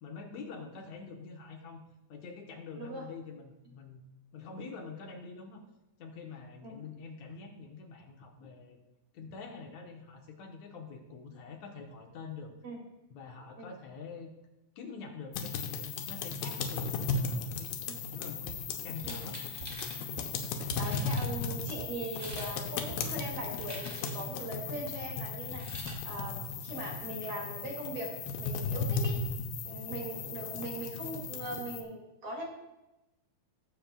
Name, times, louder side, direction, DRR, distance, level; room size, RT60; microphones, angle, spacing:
voice 1, 0.0-1.8 2.1-4.0 4.3-5.6 6.0-8.8 9.1-12.5 13.1-14.3 14.8-17.7 18.1-19.4, left 5 dB, 70° left, 1 dB, 1.8 m, -45 dB
sound 1, 15.3-31.8, left 4 dB, 90° left, 2.8 m, -36 dB
sound 2, 18.5-22.5 22.8-23.6, right 4 dB, 85° right, 1.5 m, -49 dB
sound 3, 19.0-20.0 20.5-20.6 20.8-21.3 22.0-22.5 22.8-24.3 25.4-26.0, equal, 15° right, 0.6 m, -46 dB
voice 2, 20.7-25.6 26.0-29.2 29.6-32.4, right 2 dB, 40° right, -1 dB, 2.8 m, -40 dB
20.0 x 7.6 x 2.3 m, 0.95 s
omnidirectional pair, 4.4 m